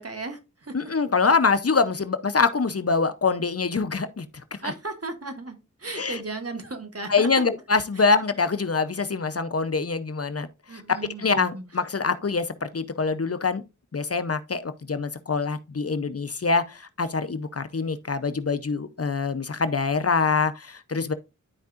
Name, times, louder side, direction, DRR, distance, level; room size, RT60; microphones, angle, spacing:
voice 1, 0.0-0.8 4.6-7.4 7.9-8.1 10.7-11.6, right 3 dB, 55° right, 1.6 m, -36 dB
voice 2, 0.7-4.3 4.6-4.7 6.0-6.2 7.1-10.8 11.2-13.6 13.9-21.1, left 4 dB, 50° left, 0.7 m, -24 dB
12.0 x 4.6 x 2.5 m
wide cardioid pair, 55°, 30 cm